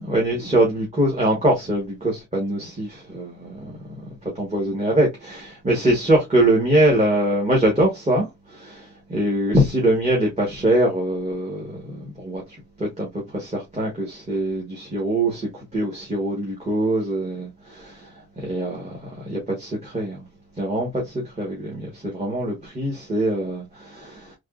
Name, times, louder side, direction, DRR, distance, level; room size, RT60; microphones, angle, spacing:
voice 1, 0.0-3.7 4.3-12.4 12.8-13.1 13.3-18.1 18.4-20.2 20.6-24.3, right 1 dB, 20° right, 1.2 m, -23 dB
3.4 x 2.9 x 2.3 m
wide cardioid pair, 145°, 31 cm